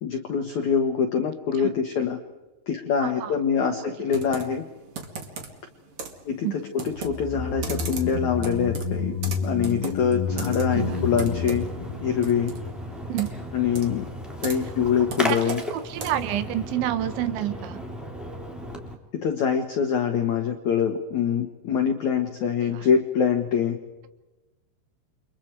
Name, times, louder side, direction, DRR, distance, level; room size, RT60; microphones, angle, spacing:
voice 1, 0.0-2.2 2.7-4.6 6.3-9.1 9.4-11.6 12.0-12.5 13.5-14.0 14.4-15.6 19.2-23.8, left 7 dB, 75° left, 5 dB, 1.7 m, -24 dB
voice 2, 3.0-3.3 3.7-3.9 6.4-6.6 10.7-11.0 13.1-13.3 15.3-17.8 22.6-22.9, right 12 dB, 75° right, 11 dB, 3.5 m, -29 dB
Computer keyboard, 4.1-16.4, right 4 dB, 45° right, 2.0 m, -39 dB
sound 1, 6.9-13.4 13.6-13.7, left 4 dB, 20° right, 6.8 m, -30 dB
Splash splatter, 10.3-18.9, equal, ahead, 2.0 m, -35 dB
29.5 x 24.5 x 4.7 m, 1.1 s
omnidirectional pair, 5.5 m